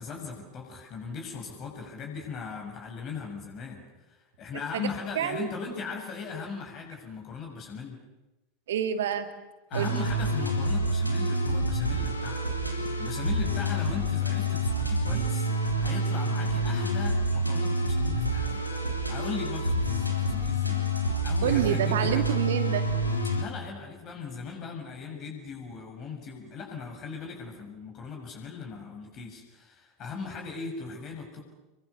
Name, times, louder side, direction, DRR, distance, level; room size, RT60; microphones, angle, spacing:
voice 1, 0.0-8.0 9.7-12.5 13.0-22.3 23.3-31.4, left 5 dB, 35° left, 1 dB, 6.9 m, -39 dB
voice 2, 5.2-5.5 8.7-9.3 9.7-9.9 21.4-22.8, right 9 dB, 60° right, 9 dB, 2.3 m, -27 dB
sound 1, 9.7-23.4, equal, 85° left, 3.4 m, -28 dB
28.5 x 23.5 x 7.0 m, 1.0 s
figure-of-eight pair, 80°, 0 cm